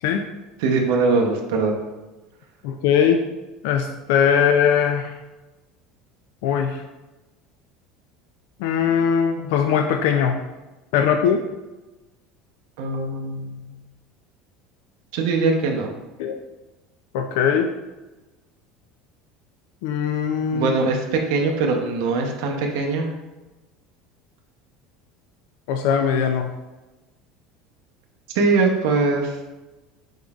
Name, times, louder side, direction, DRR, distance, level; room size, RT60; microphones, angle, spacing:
voice 1, 0.6-1.8 12.8-13.8 15.1-15.9 20.5-23.1 28.3-29.4, right 3 dB, 70° right, 2 dB, 0.7 m, -22 dB
voice 2, 2.6-3.2 3.6-5.2 6.4-6.8 8.6-10.4 10.9-11.4 16.2-16.4 17.1-17.7 19.8-20.7 25.7-26.5, left 7 dB, 75° left, 5 dB, 0.3 m, -20 dB
5.3 x 3.7 x 2.3 m, 1.1 s
cardioid pair, 155°, 0 cm